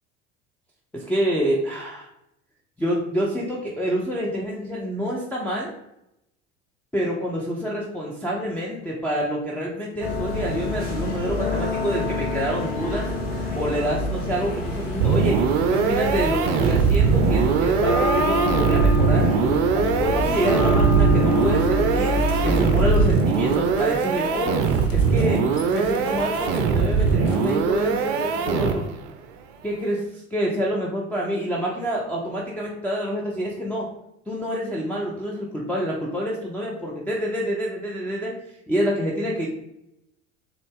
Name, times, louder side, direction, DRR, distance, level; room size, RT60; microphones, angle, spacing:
voice 1, 0.9-2.1 2.8-5.7 6.9-13.1 13.5-15.4 15.7-19.3 19.7-24.6 24.9-25.4 25.7-28.8 29.6-33.9 34.3-38.3 38.7-39.5, equal, 5° left, -5 dB, 0.5 m, -27 dB
sound 1, 10.0-23.0, left 1 dB, 60° left, 1.4 m, -26 dB
sound 2, 14.1-28.7, left 3 dB, 85° left, 0.6 m, -39 dB
sound 3, 15.0-29.1, right 5 dB, 55° right, 0.5 m, -21 dB
3.7 x 2.3 x 3.6 m, 0.84 s
figure-of-eight pair, 65°, 37 cm